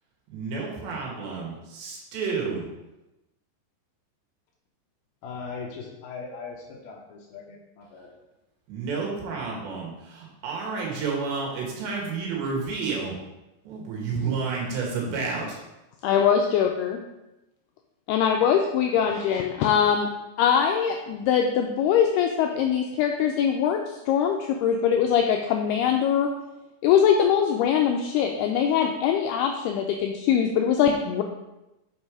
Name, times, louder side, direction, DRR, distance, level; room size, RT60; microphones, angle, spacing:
voice 1, 0.3-2.7 8.7-13.2 13.7-15.6, right 4 dB, 75° right, -2 dB, 3.8 m, -30 dB
voice 2, 5.2-8.1, left 4 dB, 70° left, -2 dB, 2.6 m, -39 dB
voice 3, 16.0-17.0 18.1-20.1 20.4-26.3 26.8-31.2, left 8 dB, 90° left, 3 dB, 2.3 m, -22 dB
7.4 x 5.4 x 4.8 m, 0.97 s
omnidirectional pair, 5.2 m